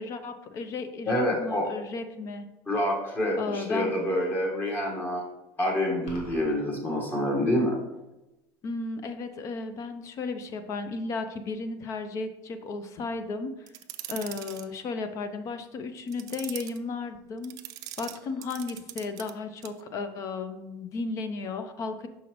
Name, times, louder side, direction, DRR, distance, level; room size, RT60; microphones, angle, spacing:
voice 1, 0.0-2.5 3.4-3.9 8.6-13.7 14.1-17.6 18.0-22.1, left 3 dB, 40° left, 9 dB, 0.6 m, -34 dB
voice 2, 1.1-1.6 2.7-5.2 5.6-7.8, left 1 dB, 25° left, -1 dB, 1.5 m, -27 dB
sound 1, 6.1-6.5, equal, 80° left, 1.7 m, -43 dB
sound 2, 13.7-14.7 16.1-16.8 17.4-19.3 19.6-19.8, right 14 dB, 50° right, 0.5 m, -41 dB
6.1 x 5.5 x 3.1 m, 0.97 s
supercardioid pair, 130°, 8 cm